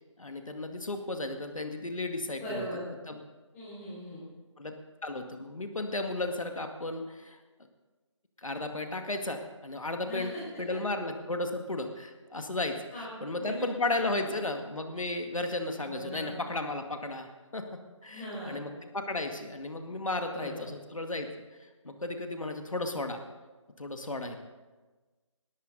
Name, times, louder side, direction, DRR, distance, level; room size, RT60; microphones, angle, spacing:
voice 1, 0.2-2.7 3.1-3.2 4.6-4.7 5.0-7.4 8.4-12.8 13.2-17.7 18.0-21.3 21.8-23.2 23.8-24.4, left 2 dB, 90° left, 5 dB, 2.1 m, -34 dB
voice 2, 2.4-2.8 3.5-4.2 10.0-10.4 10.7-10.8 12.9-13.7 13.9-14.1 15.8-16.3 18.1-18.6 20.3-20.6, equal, 10° left, -13 dB, 5.6 m, -39 dB
21.5 x 13.5 x 4.0 m, 1.3 s
figure-of-eight pair, 165°, 17 cm